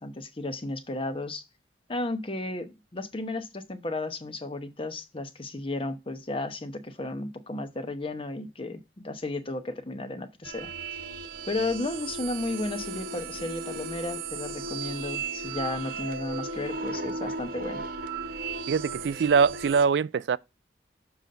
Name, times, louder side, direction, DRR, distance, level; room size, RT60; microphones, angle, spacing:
voice 1, 0.0-1.4 1.9-10.7 11.5-17.8, left 2 dB, 30° left, 0.9 m, -33 dB
sound 1, 10.4-19.9, right 4 dB, 55° right, 0.8 m, -36 dB
voice 2, 18.7-20.4, right 6 dB, 70° right, 0.3 m, -23 dB
7.0 x 3.9 x 5.4 m
head